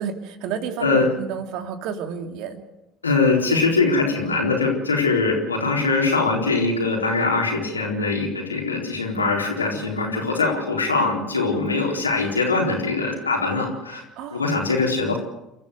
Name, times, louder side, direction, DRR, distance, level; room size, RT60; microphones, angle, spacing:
voice 1, 0.0-2.6 14.2-14.4, right 7 dB, 55° right, 6 dB, 2.7 m, -30 dB
voice 2, 3.0-14.0 14.3-15.2, left 3 dB, 85° left, 0 dB, 4.1 m, -22 dB
29.0 x 14.0 x 8.1 m, 0.91 s
figure-of-eight pair, 60°, 0 cm